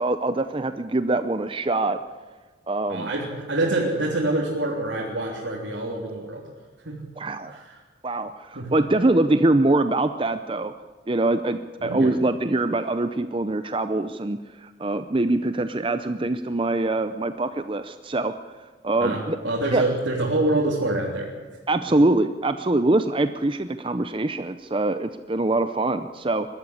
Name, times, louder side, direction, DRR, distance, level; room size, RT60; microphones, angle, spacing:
voice 1, 0.0-2.0 2.7-3.1 7.2-7.6 8.0-10.7 11.1-19.4 19.7-19.9 21.7-26.5, right 2 dB, 25° right, 10 dB, 0.6 m, -24 dB
voice 2, 2.9-6.4 6.8-7.0 7.5-7.7 8.5-8.7 11.8-12.1 19.0-21.3, right 2 dB, 80° right, -4 dB, 3.4 m, -26 dB
22.0 x 13.0 x 9.9 m, 1.3 s
head